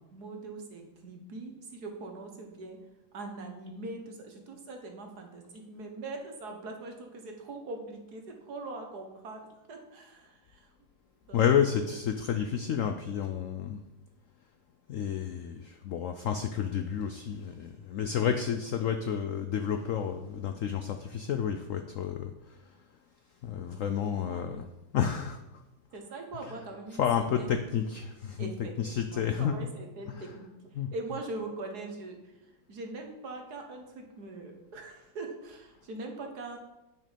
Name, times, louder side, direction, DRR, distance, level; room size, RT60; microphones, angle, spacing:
voice 1, 0.0-2.8 3.1-9.4 9.7-10.7 11.2-12.0 24.0-24.5 25.9-27.7 28.4-36.6, right 2 dB, 60° right, 3 dB, 1.8 m, -42 dB
voice 2, 11.3-13.8 14.9-22.6 23.4-24.7 24.9-25.4 26.3-26.5 26.9-29.7 30.0-30.4 30.7-30.9, left 8 dB, 70° left, 7 dB, 0.7 m, -30 dB
9.0 x 6.7 x 5.2 m, 0.98 s
omnidirectional pair, 1.9 m